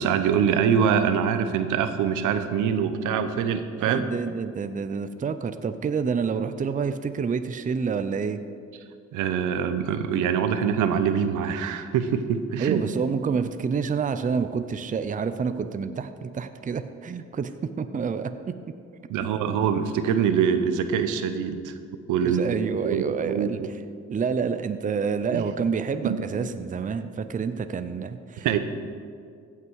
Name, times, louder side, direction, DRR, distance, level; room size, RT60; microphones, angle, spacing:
voice 1, 0.0-4.0 9.1-12.8 19.1-21.7 22.1-23.5 25.3-25.4 26.0-26.2 28.4-28.6, right 7 dB, 85° right, 9 dB, 0.8 m, -24 dB
voice 2, 3.8-8.4 12.6-18.7 19.4-19.6 22.2-23.6 24.1-28.6, right 5 dB, 25° right, 10 dB, 0.5 m, -28 dB
16.0 x 5.9 x 4.7 m, 2.2 s
cardioid pair, 90°, 30 cm